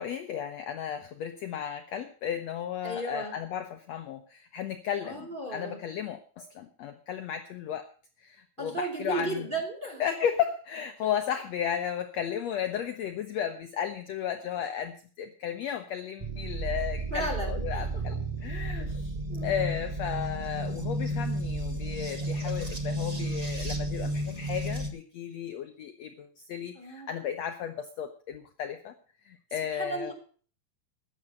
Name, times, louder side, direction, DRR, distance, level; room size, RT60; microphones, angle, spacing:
voice 1, 0.0-7.9 8.2-9.5 10.0-19.1 19.4-28.9 29.2-30.1, left 9 dB, 70° left, 8 dB, 1.7 m, -34 dB
voice 2, 2.8-3.3 5.0-5.8 6.4-6.5 8.6-10.0 17.1-17.9 19.3-19.5 26.7-27.1 29.7-30.1, right 2 dB, 15° right, 2 dB, 2.5 m, -35 dB
sound 1, 16.2-24.9, right 1 dB, 80° right, 0.3 m, -32 dB
14.0 x 9.9 x 5.3 m, 0.42 s
omnidirectional pair, 3.9 m